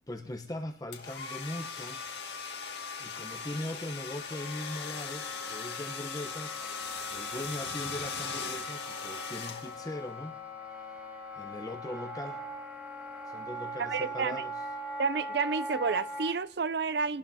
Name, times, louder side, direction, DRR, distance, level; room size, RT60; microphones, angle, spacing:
voice 1, 0.1-2.0 3.0-10.3 10.7-11.0 11.4-12.4 13.2-14.6, left 1 dB, 20° left, 3 dB, 0.9 m, -40 dB
sound 1, 0.9-10.1, left 6 dB, 75° left, 1.8 m, -39 dB
Wind instrument woodwind instrument, 4.3-16.3, equal, 10° right, 2.3 m, -41 dB
voice 2, 13.8-14.4 15.0-17.2, right 5 dB, 75° right, 16 dB, 0.5 m, -30 dB
27.0 x 19.0 x 2.8 m, 0.76 s
head